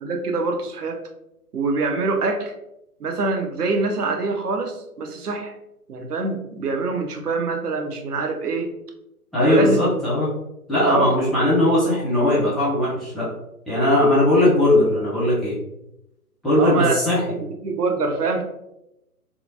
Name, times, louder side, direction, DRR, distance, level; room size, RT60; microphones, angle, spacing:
voice 1, 0.0-1.0 1.5-2.5 3.0-5.5 5.9-8.7 9.5-9.8 10.8-11.1 16.6-17.0 17.3-18.4, right 3 dB, 80° right, 4 dB, 0.7 m, -24 dB
voice 2, 9.3-10.3 10.7-13.3 13.7-15.5 16.4-17.2, left 1 dB, ahead, -11 dB, 0.3 m, -19 dB
2.9 x 2.3 x 2.6 m, 0.86 s
figure-of-eight pair, 140°, 46 cm